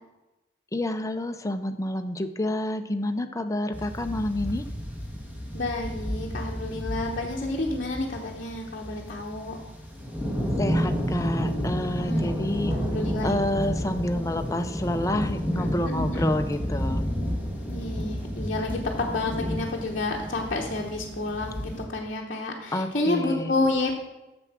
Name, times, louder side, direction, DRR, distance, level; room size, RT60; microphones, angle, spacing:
voice 1, 0.7-4.6 10.6-12.7 13.2-17.1 22.7-23.5, left 1 dB, 15° left, 8 dB, 0.5 m, -28 dB
sound 1, 3.7-21.8, equal, 10° right, 1.5 m, -31 dB
voice 2, 5.5-9.6 12.0-13.4 15.5-16.3 17.7-24.0, left 2 dB, 45° left, -3 dB, 1.0 m, -30 dB
7.6 x 7.0 x 6.0 m, 1.0 s
head